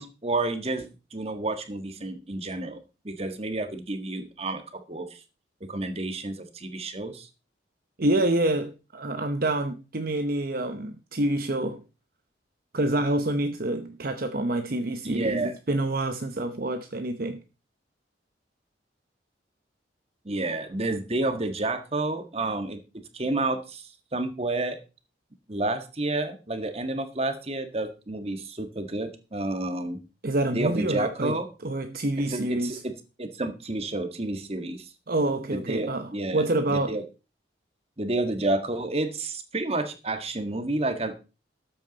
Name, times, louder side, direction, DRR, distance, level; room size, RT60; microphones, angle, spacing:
voice 1, 0.0-2.8 3.0-4.6 4.9-5.2 5.7-7.3 15.0-15.5 20.2-22.8 23.1-24.8 25.5-30.0 30.5-31.5 32.3-32.8 33.2-34.9 35.5-36.4 36.7-37.0 38.0-41.2, right 2 dB, 30° right, 1.6 m, -30 dB
voice 2, 8.0-11.8 12.7-17.4 30.2-32.8 35.1-37.0, right 1 dB, 50° right, 0.9 m, -27 dB
13.0 x 9.0 x 4.0 m
head